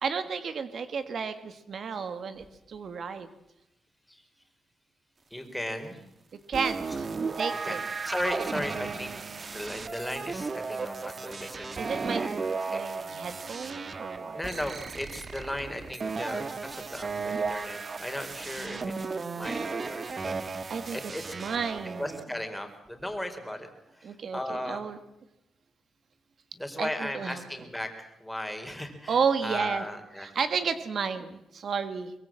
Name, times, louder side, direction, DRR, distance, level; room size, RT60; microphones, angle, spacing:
voice 1, 0.0-3.3 6.5-7.1 7.4-7.8 11.8-12.2 12.7-14.4 18.6-19.4 20.7-21.0 21.3-22.2 24.0-25.0 26.8-27.4 29.1-29.8 30.2-32.1, right 6 dB, 60° right, 10 dB, 1.6 m, -32 dB
voice 2, 5.3-6.0 7.6-7.8 8.0-9.1 9.5-12.9 14.3-19.1 19.3-20.3 20.9-21.3 22.0-23.7 24.0-24.8 26.6-27.9 28.2-30.3, left 1 dB, 5° left, 6 dB, 4.2 m, -36 dB
sound 1, 6.5-22.2, right 4 dB, 40° right, 1.5 m, -35 dB
23.5 x 22.0 x 7.6 m, 0.87 s
cardioid pair, 90°, 0 cm